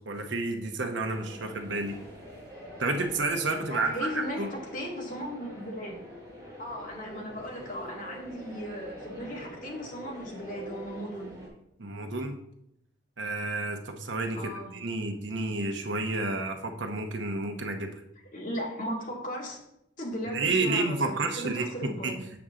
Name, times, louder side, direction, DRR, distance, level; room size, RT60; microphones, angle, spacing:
voice 1, 0.1-2.0 2.8-4.5 11.8-12.3 13.2-17.9 20.3-22.1, right 3 dB, 70° right, 5 dB, 0.9 m, -30 dB
sound 1, 1.1-11.5, equal, 20° right, 2.4 m, -45 dB
voice 2, 3.7-6.0 6.6-11.4 14.4-14.7 18.3-19.6 20.0-22.2, equal, 45° left, -2 dB, 2.1 m, -37 dB
7.6 x 7.1 x 3.7 m, 0.79 s
head